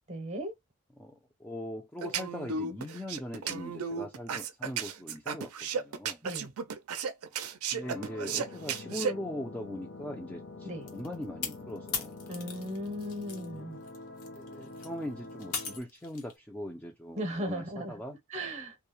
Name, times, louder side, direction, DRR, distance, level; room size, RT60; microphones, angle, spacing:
voice 1, 0.1-0.5 6.2-6.5 10.6-10.9 12.3-13.8 17.2-18.0 18.3-18.8, equal, 30° right, 0.7 m, -36 dB
voice 2, 1.0-6.2 7.7-12.2 14.3-18.2, left 1 dB, 5° left, 0.3 m, -40 dB
sound 1, 2.0-9.1, right 6 dB, 75° right, 0.4 m, -34 dB
sound 2, 7.8-15.8, left 2 dB, 55° left, 0.7 m, -46 dB
sound 3, 10.9-13.5 13.8-16.3, left 6 dB, 80° left, 0.8 m, -39 dB
2.3 x 2.0 x 2.8 m
head